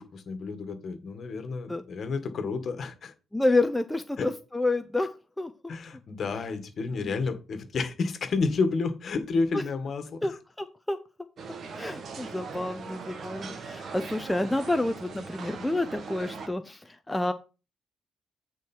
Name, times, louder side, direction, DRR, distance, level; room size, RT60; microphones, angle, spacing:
voice 1, 0.0-3.1 4.2-4.3 5.7-10.4, left 4 dB, 50° left, 9 dB, 1.8 m, -30 dB
voice 2, 3.3-5.1 5.4-5.5 7.0-7.1 9.5-9.6 10.2-10.3 10.6-11.0 11.7-17.3, left 2 dB, 10° left, 8 dB, 0.7 m, -29 dB
sound 1, 11.4-16.5, right 4 dB, 55° right, 1.5 m, -40 dB
9.0 x 4.7 x 4.6 m, 0.31 s
cardioid pair, 90°, 0 cm